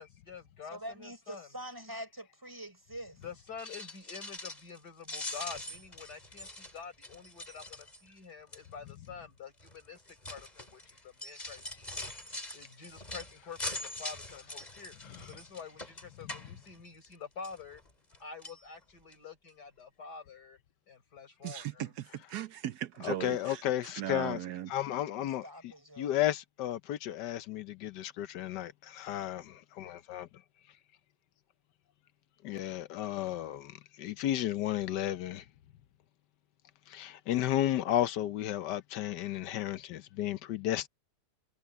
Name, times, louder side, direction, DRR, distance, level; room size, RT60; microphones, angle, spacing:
voice 1, 0.0-1.5 3.2-10.0 10.3-12.1 12.5-14.9 15.2-17.8 18.2-20.6 20.9-21.9, left 5 dB, 70° left, 4.7 m, -47 dB
voice 2, 0.7-3.2 25.2-26.2, equal, 10° right, 4.4 m, -45 dB
sound 1, 3.5-4.8 5.0-8.2 8.5-8.9 9.6-17.1 17.4-18.2 18.4-18.6 19.1-19.2 19.5-19.6, left 2 dB, 25° left, 3.6 m, -43 dB
voice 3, 21.4-23.6 24.0-24.7, right 12 dB, 75° right, 1.2 m, -38 dB
voice 4, 23.0-24.4 24.7-30.3 32.4-35.4 36.9-40.9, left 12 dB, 85° left, 1.4 m, -33 dB
omnidirectional pair, 1.8 m